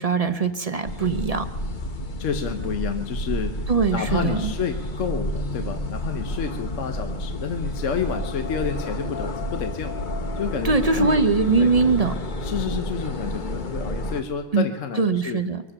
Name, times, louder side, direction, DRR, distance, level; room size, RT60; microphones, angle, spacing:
voice 1, 0.0-1.5 3.7-4.5 10.6-12.1 14.5-14.7 15.0-15.6, right 4 dB, 40° right, 9 dB, 0.6 m, -21 dB
sound 1, 0.9-14.2, equal, 40° left, 1.0 m, -30 dB
voice 2, 2.2-3.5 3.9-9.9 10.4-11.1 11.6-11.7 12.4-15.4, left 6 dB, 65° left, 6 dB, 1.2 m, -29 dB
23.5 x 8.1 x 6.8 m, 1.2 s
omnidirectional pair, 1.4 m